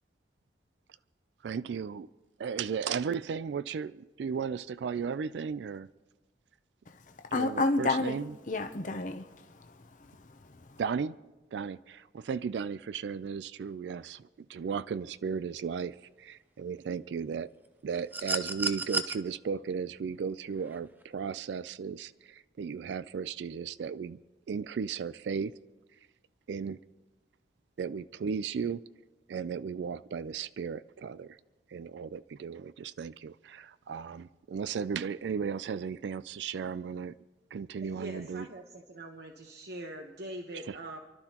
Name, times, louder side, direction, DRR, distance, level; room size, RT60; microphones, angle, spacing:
voice 1, 1.4-2.1 2.4-5.9 7.3-8.3 10.8-11.2 11.5-17.5 17.8-24.2 24.5-25.5 26.5-26.8 27.8-28.8 29.3-31.4 31.7-37.2 37.5-38.5 40.6-40.8, right 6 dB, 85° right, 17 dB, 0.3 m, -35 dB
voice 2, 7.2-10.8, left 3 dB, 45° left, 7 dB, 0.7 m, -32 dB
sound 1, 18.1-19.1 20.7-20.8, right 3 dB, 10° right, 0.6 m, -32 dB
voice 3, 37.8-41.0, right 1 dB, 70° right, 3 dB, 1.0 m, -43 dB
28.5 x 12.0 x 2.9 m, 1.1 s
head